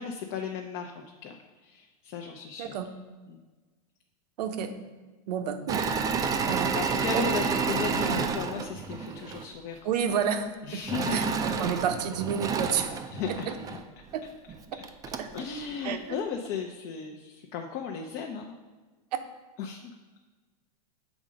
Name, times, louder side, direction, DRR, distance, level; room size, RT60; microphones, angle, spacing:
voice 1, 0.0-2.7 3.3-3.4 6.5-10.2 10.6-11.7 13.1-13.8 15.3-18.5 19.6-19.9, left 6 dB, 50° left, 2 dB, 0.7 m, -36 dB
voice 2, 4.4-4.7 5.3-5.8 6.4-6.7 7.1-7.2 8.0-8.3 9.8-10.8 11.1-12.9 13.3-13.4 15.2-15.3 15.8-16.2 19.1-19.2, right 8 dB, 75° right, 8 dB, 0.7 m, -30 dB
Engine / Mechanisms, 5.7-9.5 10.9-13.8 14.5-14.6 14.8-15.4, right 5 dB, 15° right, 0.4 m, -30 dB
7.1 x 3.7 x 5.1 m, 1.3 s
supercardioid pair, 130°, 21 cm